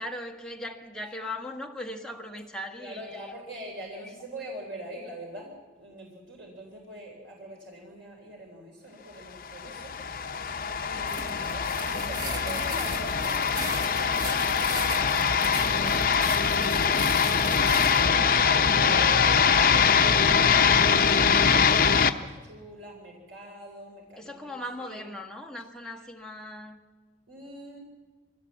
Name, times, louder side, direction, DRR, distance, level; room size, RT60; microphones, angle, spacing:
voice 1, 0.0-3.4 4.0-4.1 24.2-26.8, left 1 dB, 5° left, 1.4 m, -39 dB
voice 2, 2.8-10.5 10.8-16.1 16.4-17.3 17.7-19.3 19.6-25.1 25.8-25.9 27.3-27.8, right 1 dB, 80° right, 3.8 m, -44 dB
sound 1, 9.6-22.1, left 6 dB, 50° left, 0.8 m, -23 dB
sound 2, 11.1-18.1, right 1 dB, 25° right, 1.8 m, -38 dB
23.0 x 16.5 x 7.3 m
head